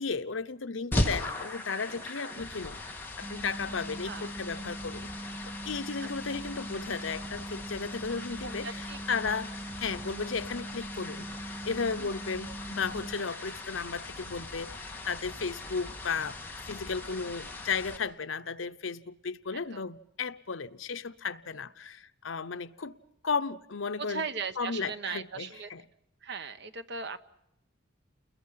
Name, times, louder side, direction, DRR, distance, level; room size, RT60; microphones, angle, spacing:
voice 1, 0.0-2.8 3.2-5.1 5.6-8.7 9.1-9.5 9.8-16.4 16.7-22.9 23.2-24.2 24.6-25.8, left 5 dB, 80° left, 11 dB, 0.9 m, -34 dB
sound 1, 0.9-18.0, left 1 dB, 10° left, 2.3 m, -39 dB
sound 2, 3.2-13.2, right 2 dB, 15° right, 1.0 m, -42 dB
voice 2, 6.0-6.4 8.4-9.2 11.9-12.1 19.5-19.8 24.0-25.7 26.2-27.3, right 5 dB, 60° right, 10 dB, 1.1 m, -39 dB
29.5 x 21.5 x 5.8 m, 0.81 s
head